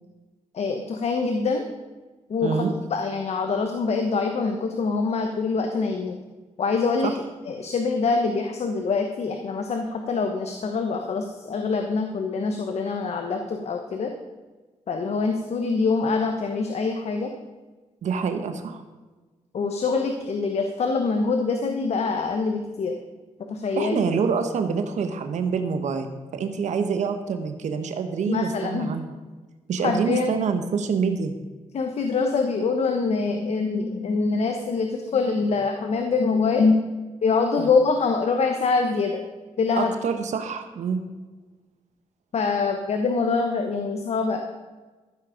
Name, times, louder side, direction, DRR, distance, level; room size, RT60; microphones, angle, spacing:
voice 1, 0.5-1.7 2.3-2.6 2.9-6.2 6.6-7.1 7.4-14.1 14.9-17.3 19.5-22.9 23.5-24.1 28.3-28.9 29.8-30.4 31.7-36.8 37.2-39.2 39.6-39.9 42.3-44.4, left 4 dB, 65° left, 4 dB, 1.1 m, -24 dB
voice 2, 2.4-2.7 18.0-18.8 23.7-29.1 29.7-31.3 37.6-37.7 39.8-41.0, right 5 dB, 80° right, 7 dB, 1.0 m, -26 dB
14.0 x 7.7 x 5.1 m, 1.3 s
cardioid pair, 95°, 12 cm